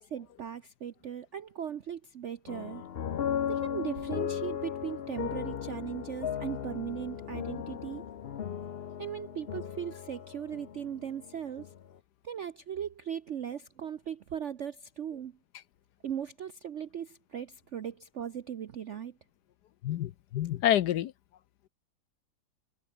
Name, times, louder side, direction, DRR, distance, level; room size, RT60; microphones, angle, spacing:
voice 1, 0.0-2.8 3.5-8.0 9.0-11.7 12.2-15.4 16.0-19.2, right 9 dB, 65° right, 0.7 m, -38 dB
sound 1, 2.5-11.8, left 8 dB, 85° left, 0.5 m, -36 dB
voice 2, 19.8-21.1, left 11 dB, 65° left, 1.1 m, -28 dB
omnidirectional pair, 2.1 m